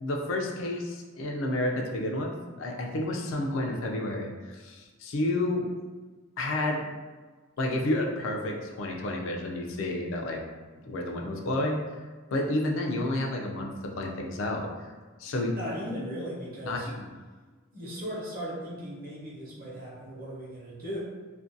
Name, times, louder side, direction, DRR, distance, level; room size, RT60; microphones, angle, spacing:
voice 1, 0.0-5.7 6.4-6.8 7.6-10.4 10.9-11.8 12.3-14.7 15.2-15.6 16.6-17.0, left 1 dB, 65° left, 1 dB, 0.4 m, -30 dB
voice 2, 15.5-16.9 17.7-21.0, equal, 45° right, -6 dB, 0.8 m, -37 dB
2.5 x 2.2 x 2.5 m, 1.3 s
head